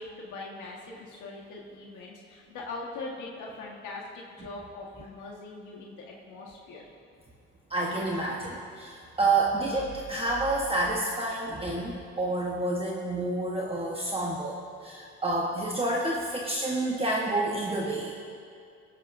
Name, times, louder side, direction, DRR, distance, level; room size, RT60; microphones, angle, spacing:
voice 1, 0.0-6.9, left 3 dB, 80° left, -2 dB, 1.6 m, -41 dB
voice 2, 7.7-14.6 14.8-18.1, right 2 dB, 20° right, -3 dB, 1.2 m, -29 dB
19.0 x 11.0 x 2.7 m, 2.4 s
cardioid pair, 90°, 30 cm